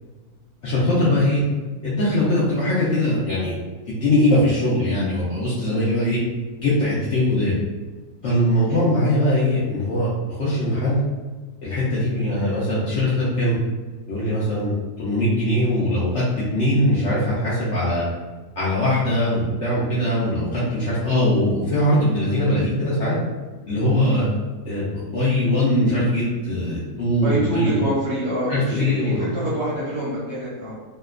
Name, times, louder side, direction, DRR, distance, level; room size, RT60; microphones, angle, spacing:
voice 1, 0.6-1.4 1.8-3.5 3.9-6.2 6.6-7.6 8.2-11.0 11.6-13.5 14.1-16.2 16.5-18.0 18.6-23.2 23.7-24.3 24.6-27.8 28.5-29.4, left 1 dB, 65° left, -8 dB, 0.7 m, -21 dB
voice 2, 27.2-30.7, equal, 55° right, -8 dB, 0.8 m, -26 dB
2.8 x 2.1 x 2.3 m, 1.3 s
omnidirectional pair, 1.7 m